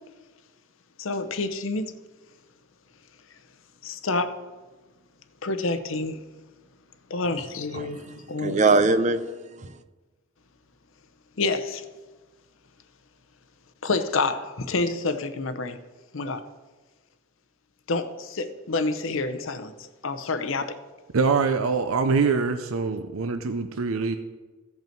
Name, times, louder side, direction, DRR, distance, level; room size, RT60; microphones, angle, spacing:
voice 1, 1.0-1.9 3.8-4.4 5.4-6.2 7.1-8.6 11.4-11.8 13.8-15.8 16.1-16.4 17.9-20.8, left 3 dB, 70° left, 0.7 m, -28 dB
voice 2, 7.7-9.8, right 3 dB, 35° right, 0.5 m, -23 dB
voice 3, 21.1-24.2, right 4 dB, 90° right, 0.6 m, -24 dB
15.5 x 5.5 x 4.5 m
head